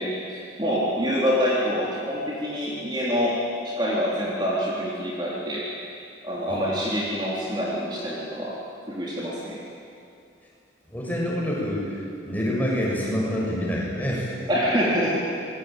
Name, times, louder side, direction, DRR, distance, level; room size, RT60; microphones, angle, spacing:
voice 1, 0.0-5.7 6.2-8.6 8.9-9.6 14.5-15.3, equal, 25° right, -5 dB, 3.9 m, -26 dB
voice 2, 10.9-14.3, equal, 10° left, -4 dB, 6.9 m, -27 dB
27.5 x 22.0 x 9.2 m, 2.6 s
head